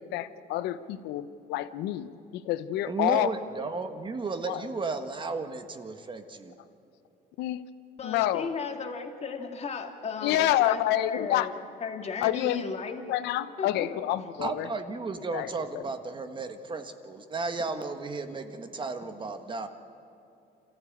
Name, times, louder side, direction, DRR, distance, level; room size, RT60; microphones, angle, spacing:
voice 1, 0.0-3.3 4.5-4.6 7.4-7.7 8.0-8.5 10.2-11.5 12.2-12.7 13.1-14.7 15.3-15.5 15.7-15.8, left 13 dB, 90° left, 14 dB, 0.8 m, -28 dB
voice 2, 2.9-6.5 14.4-19.7, right 3 dB, 30° right, 7 dB, 1.5 m, -34 dB
voice 3, 8.0-11.5 11.8-13.0 13.6-13.9, left 5 dB, 40° left, 4 dB, 2.1 m, -35 dB
28.0 x 14.5 x 8.7 m, 2.8 s
cardioid pair, 110°, 17 cm